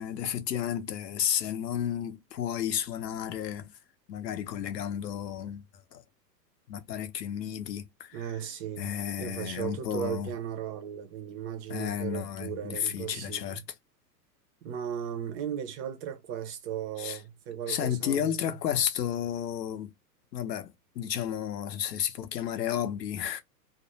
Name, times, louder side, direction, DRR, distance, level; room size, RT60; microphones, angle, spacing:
voice 1, 0.0-3.7 4.1-5.7 5.9-6.0 6.7-8.3 8.8-10.3 11.7-13.6 17.0-17.2 17.7-19.9 20.3-23.4, left 9 dB, 75° left, 0.8 m, -32 dB
voice 2, 8.1-8.9 9.2-13.6 14.6-18.3, right 9 dB, 25° right, 0.5 m, -36 dB
2.5 x 2.1 x 2.9 m
hypercardioid pair, 105°, 50 cm